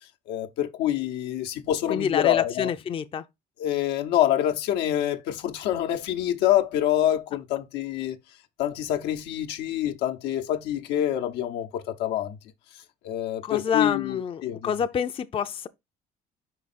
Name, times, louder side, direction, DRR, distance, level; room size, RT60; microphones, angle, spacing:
voice 1, 0.3-2.7 3.6-8.2 8.6-12.4 13.0-14.7, left 12 dB, 85° left, 0.8 m, -26 dB
voice 2, 1.9-3.2 13.4-15.7, left 8 dB, 35° left, 0.5 m, -27 dB
5.2 x 4.8 x 4.1 m
cardioid pair, 110°, 17 cm